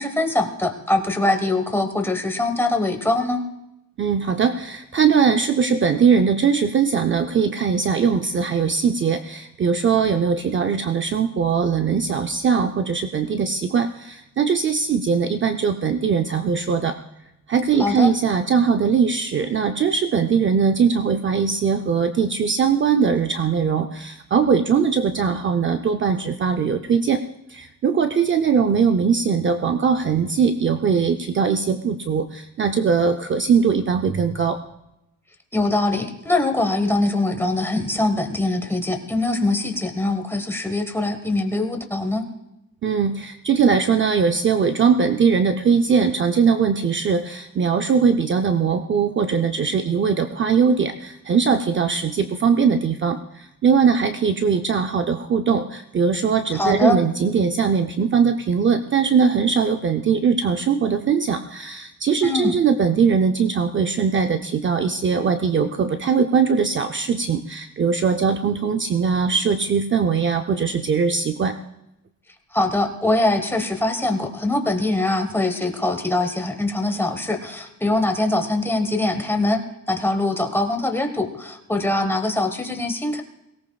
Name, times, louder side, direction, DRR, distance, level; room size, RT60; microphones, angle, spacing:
voice 1, 0.0-3.4 17.8-18.1 35.5-42.2 56.5-57.0 62.2-62.6 72.5-79.6 79.9-83.2, left 2 dB, 5° left, 5 dB, 1.1 m, -23 dB
voice 2, 4.0-17.0 17.5-27.2 27.5-34.6 42.8-71.6, right 6 dB, 35° right, 7 dB, 0.5 m, -20 dB
23.0 x 17.5 x 2.3 m, 0.87 s
wide cardioid pair, 170°, 34 cm